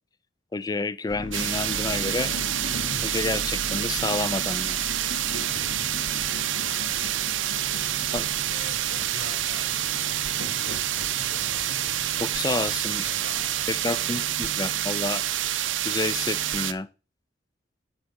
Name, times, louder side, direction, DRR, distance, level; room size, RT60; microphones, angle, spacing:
voice 1, 0.5-2.3 3.0-4.8 8.1-8.3 12.2-13.0 13.7-15.2 15.8-16.9, left 3 dB, 20° left, 0.4 m, -29 dB
sound 1, 1.1-13.8, left 1 dB, 90° left, 1.4 m, -39 dB
sound 2, 1.3-16.7, right 12 dB, 80° right, 0.6 m, -28 dB
voice 2, 6.5-7.2 7.7-11.9 12.9-14.7, left 2 dB, 65° left, 2.7 m, -46 dB
8.9 x 5.9 x 5.2 m
head